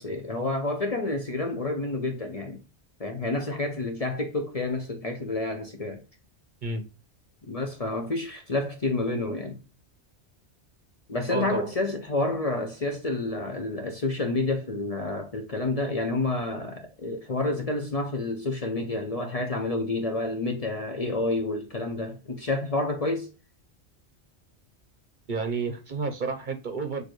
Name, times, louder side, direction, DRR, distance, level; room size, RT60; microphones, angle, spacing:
voice 1, 0.0-2.6 3.0-6.0 7.5-9.6 11.1-23.3, left 2 dB, 40° left, 0.7 m, -29 dB
voice 2, 11.3-11.7 25.3-27.0, right 4 dB, 50° right, 0.8 m, -30 dB
6.5 x 2.6 x 3.0 m
omnidirectional pair, 1.2 m